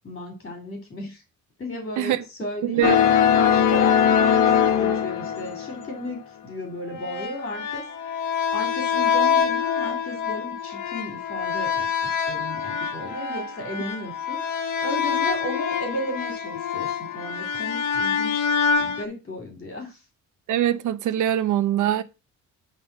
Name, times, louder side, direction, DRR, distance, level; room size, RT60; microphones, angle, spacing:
voice 1, 0.0-1.2 1.6-2.8 3.3-7.8 8.5-18.5 18.8-20.0, left 1 dB, 35° left, 2.8 m, -34 dB
voice 2, 2.6-3.0 20.5-22.0, right 11 dB, 80° right, 0.9 m, -22 dB
sound 1, 2.8-6.0 6.9-19.0, left 7 dB, 85° left, 1.3 m, -24 dB
9.6 x 3.6 x 5.8 m
cardioid pair, 90°, 30 cm